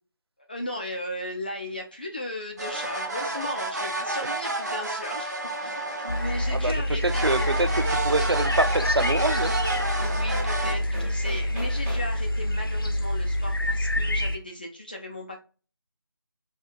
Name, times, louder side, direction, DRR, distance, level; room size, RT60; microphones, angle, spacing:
voice 1, 0.5-5.3 5.6-7.5 10.0-15.4, left 1 dB, 25° left, 0.3 m, -36 dB
sound 1, 2.5-4.2 6.6-6.7 7.0-12.3, right 1 dB, 5° right, 0.8 m, -44 dB
sound 2, 2.6-6.7 7.1-10.7, right 2 dB, 45° right, 1.0 m, -30 dB
sound 3, 6.1-14.4, left 1 dB, 65° left, 0.6 m, -27 dB
voice 2, 7.0-9.5, right 2 dB, 85° right, 0.5 m, -26 dB
4.2 x 2.4 x 2.3 m
figure-of-eight pair, 155°, 13 cm